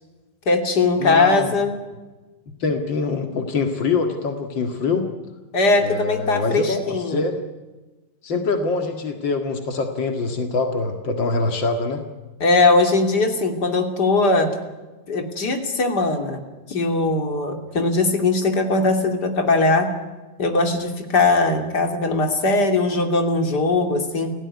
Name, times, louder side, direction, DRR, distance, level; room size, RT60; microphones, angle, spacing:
voice 1, 0.5-1.7 5.5-7.2 12.4-14.5 15.1-16.4 16.7-19.9 20.4-24.3, left 3 dB, 60° left, 4 dB, 3.4 m, -20 dB
voice 2, 1.0-1.5 2.6-5.1 5.8-7.4 8.2-12.0, left 4 dB, 90° left, 5 dB, 2.6 m, -24 dB
29.0 x 17.5 x 9.7 m, 1.2 s
omnidirectional pair, 2.0 m